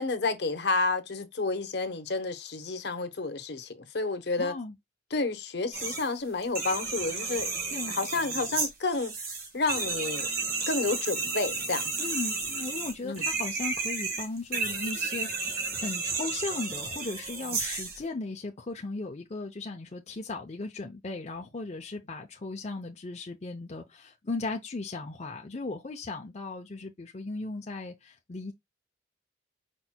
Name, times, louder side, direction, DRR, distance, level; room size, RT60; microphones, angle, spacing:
voice 1, 0.0-4.5 5.1-7.5 7.9-9.1 9.5-10.3 10.7-11.9 13.0-13.2, left 3 dB, 65° left, 1.0 m, -30 dB
voice 2, 4.4-4.7 7.3-7.4 7.7-8.0 12.0-28.5, left 3 dB, 35° left, 0.6 m, -37 dB
sound 1, 5.7-6.1 6.4-18.0, right 4 dB, 55° right, 1.6 m, -32 dB
5.3 x 4.3 x 2.2 m
head